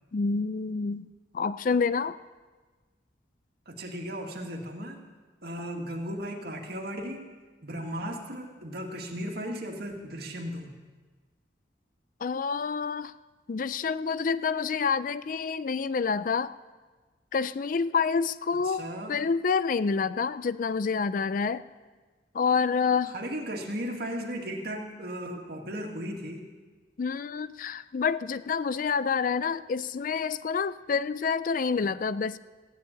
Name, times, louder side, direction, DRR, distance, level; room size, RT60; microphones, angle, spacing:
voice 1, 0.1-1.1 1.3-2.2 12.2-13.1 13.5-16.5 17.3-18.8 19.1-21.6 22.3-23.1 27.0-32.4, left 5 dB, 45° left, 15 dB, 0.4 m, -28 dB
voice 2, 3.7-5.0 5.4-7.2 7.6-10.7 18.6-19.2 23.1-26.5, equal, 60° right, 1 dB, 2.1 m, -36 dB
15.5 x 10.0 x 8.6 m, 1.3 s
head